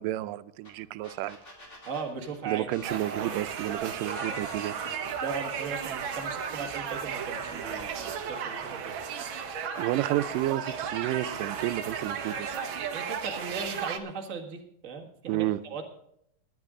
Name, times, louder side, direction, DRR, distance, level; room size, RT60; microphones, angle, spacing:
voice 1, 0.0-1.4 2.5-4.8 9.8-12.6 15.3-15.6, right 15 dB, 85° right, 13 dB, 2.2 m, -31 dB
sound 1, 0.6-0.7 1.0-5.6 6.0-6.5, left 3 dB, 20° left, 3.4 m, -47 dB
voice 2, 1.8-2.6 5.2-9.0 12.9-15.8, right 5 dB, 35° right, 1 dB, 1.3 m, -37 dB
sound 2, 2.8-14.0, right 7 dB, 65° right, 1.2 m, -34 dB
20.0 x 9.6 x 3.7 m, 0.74 s
omnidirectional pair, 3.8 m